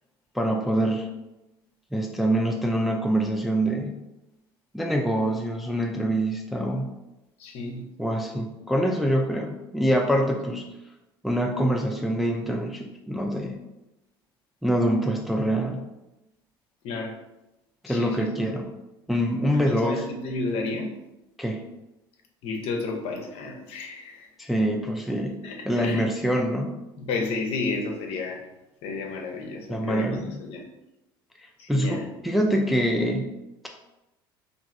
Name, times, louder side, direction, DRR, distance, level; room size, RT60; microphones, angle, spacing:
voice 1, 0.3-1.1 1.9-3.9 4.7-6.9 8.0-10.7 11.2-13.6 14.6-15.8 17.8-18.7 19.1-20.1 21.4-21.6 24.4-26.7 29.7-30.4 31.7-33.3, right 1 dB, ahead, 1 dB, 0.3 m, -25 dB
voice 2, 7.4-8.2 16.8-17.1 17.9-18.3 19.5-20.9 22.4-24.3 25.4-26.0 27.0-28.4 28.8-30.6 31.6-32.1, left 3 dB, 55° left, 2 dB, 0.6 m, -32 dB
2.9 x 2.5 x 2.5 m, 0.95 s
hypercardioid pair, 70°, 12 cm